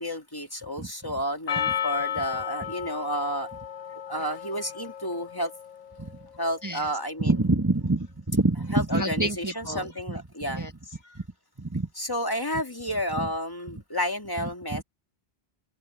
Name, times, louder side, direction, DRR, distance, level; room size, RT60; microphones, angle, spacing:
voice 1, 0.0-3.5 4.1-5.5 6.4-7.3 8.7-10.6 12.0-14.8, equal, 20° left, 2.0 m, -31 dB
Percussion, 1.5-6.1, left 9 dB, 45° left, 0.7 m, -33 dB
voice 2, 6.6-6.9 7.2-10.7 11.0-11.2 11.6-11.9 14.4-14.8, right 2 dB, 15° right, 1.5 m, -27 dB
open air
omnidirectional pair, 1.1 m